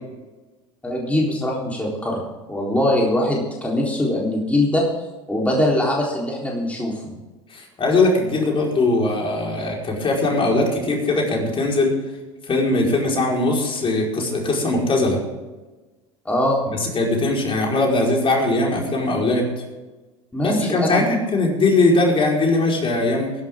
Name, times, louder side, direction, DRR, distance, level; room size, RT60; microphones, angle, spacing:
voice 1, 0.8-4.8 5.3-7.1 16.3-16.6 20.3-21.1, left 1 dB, 10° left, -3 dB, 3.9 m, -22 dB
voice 2, 7.5-11.9 12.5-15.2 16.7-19.5 20.4-23.3, left 2 dB, 35° left, -1 dB, 4.9 m, -20 dB
20.5 x 11.5 x 3.8 m, 1.2 s
hypercardioid pair, 80°, 16 cm